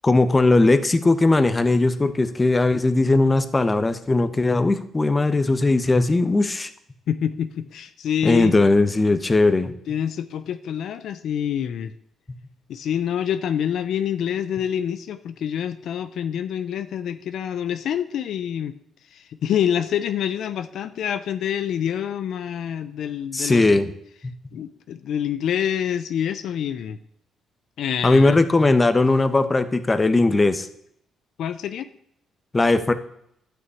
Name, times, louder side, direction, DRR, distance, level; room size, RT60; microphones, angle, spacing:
voice 1, 0.0-6.7 8.2-9.7 23.3-23.9 24.2-24.3 28.0-30.7 32.5-32.9, left 2 dB, 20° left, 11 dB, 1.1 m, -19 dB
voice 2, 7.1-8.7 9.9-11.9 12.7-18.8 19.1-23.7 24.5-27.0 27.8-28.4 31.4-31.9, left 9 dB, 70° left, 11 dB, 0.7 m, -26 dB
11.0 x 6.2 x 8.4 m, 0.71 s
cardioid pair, 90°, 0 cm